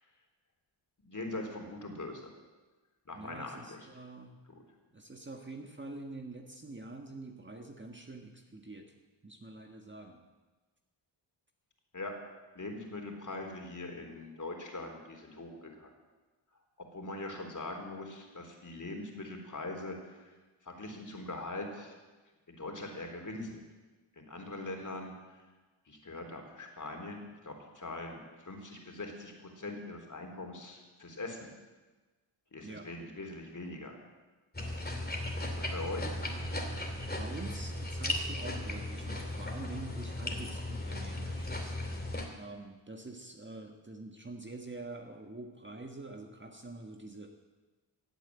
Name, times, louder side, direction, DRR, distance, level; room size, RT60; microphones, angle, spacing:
voice 1, 1.0-2.3 3.1-3.8 4.5-4.6 11.9-12.1 12.6-15.9 16.9-20.3 20.6-21.9 22.5-23.6 24.2-25.4 25.9-31.5 32.5-34.0 35.5-36.1, left 2 dB, 35° left, 2 dB, 3.6 m, -42 dB
voice 2, 3.1-4.4 4.9-8.9 9.2-10.2 32.6-32.9 37.2-41.8 42.3-47.3, right 2 dB, 25° right, 3 dB, 1.6 m, -46 dB
sound 1, 34.5-42.3, left 1 dB, 20° left, 2.7 m, -36 dB
16.0 x 8.4 x 8.4 m, 1.2 s
cardioid pair, 65°, 49 cm